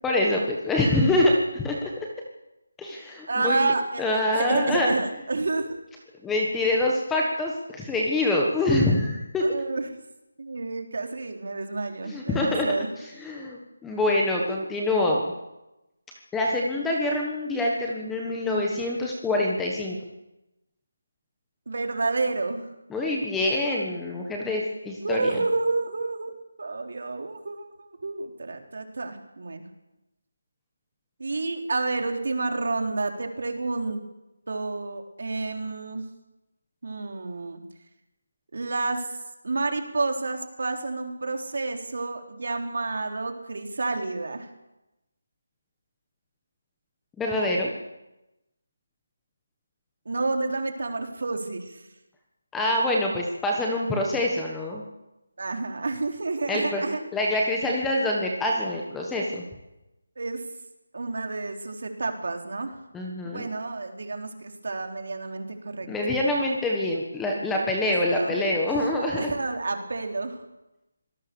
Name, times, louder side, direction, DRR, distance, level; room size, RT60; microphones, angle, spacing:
voice 1, 0.0-2.1 2.8-3.7 4.0-5.0 6.2-9.5 12.0-12.7 13.2-15.3 16.3-20.0 22.9-25.4 47.2-47.7 52.5-54.8 56.5-56.8 57.1-59.4 62.9-63.5 65.9-69.3, left 1 dB, 5° left, -1 dB, 1.4 m, -25 dB
voice 2, 3.3-5.7 9.4-9.9 10.4-12.9 21.7-22.7 25.0-29.7 31.2-34.0 34.5-36.0 36.8-37.6 38.5-39.1 39.4-44.5 50.1-51.8 55.4-57.0 60.2-60.4 60.9-62.8 63.2-65.9 67.8-68.5 68.9-70.5, right 3 dB, 50° right, 4 dB, 3.7 m, -30 dB
26.0 x 18.0 x 7.1 m, 0.96 s
figure-of-eight pair, 180°, 0 cm